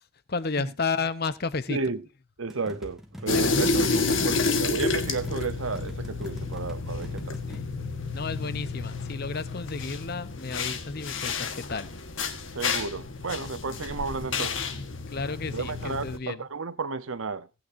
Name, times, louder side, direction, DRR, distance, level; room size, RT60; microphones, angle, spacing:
voice 1, 0.3-1.8 3.3-4.2 6.9-7.2 7.5-7.7 8.1-11.9 15.1-16.4, left 4 dB, 50° left, 0.8 m, -32 dB
voice 2, 1.7-2.1 2.4-7.4 12.5-14.6 15.5-17.5, right 4 dB, 75° right, 0.9 m, -33 dB
sound 1, 2.5-7.7, equal, ahead, 1.5 m, -44 dB
sound 2, 3.3-16.2, left 4 dB, 65° left, 1.4 m, -30 dB
18.5 x 8.8 x 2.7 m
head